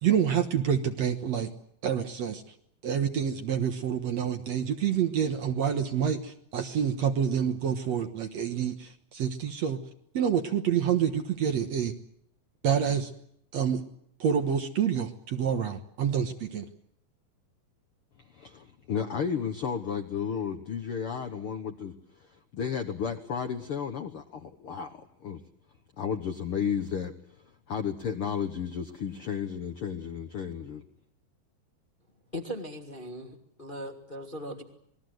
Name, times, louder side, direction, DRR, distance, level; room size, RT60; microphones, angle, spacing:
voice 1, 0.0-1.5 1.8-2.4 2.8-9.8 10.1-11.9 12.6-13.1 13.5-13.8 14.2-16.7, right 8 dB, 60° right, 7 dB, 2.1 m, -27 dB
voice 2, 18.3-25.4 26.0-27.1 27.7-30.8, left 7 dB, 65° left, 6 dB, 1.4 m, -33 dB
voice 3, 32.3-34.6, equal, 25° left, 3 dB, 1.2 m, -39 dB
27.0 x 20.5 x 7.9 m, 0.72 s
omnidirectional pair, 4.1 m